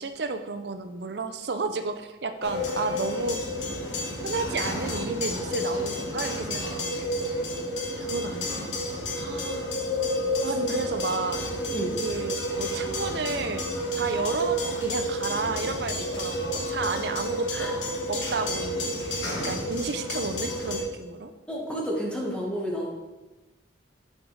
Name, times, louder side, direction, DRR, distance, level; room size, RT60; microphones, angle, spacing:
voice 1, 0.0-3.4 4.2-7.4 8.0-8.8 9.2-9.7 10.4-11.4 12.0-13.6 14.0-17.8 18.1-21.3, right 3 dB, 65° right, 8 dB, 0.6 m, -32 dB
sound 1, 2.4-20.8, left 1 dB, 85° left, 1.4 m, -30 dB
voice 2, 21.5-22.9, equal, 5° left, -3 dB, 1.2 m, -31 dB
6.5 x 5.9 x 3.9 m, 1.1 s
head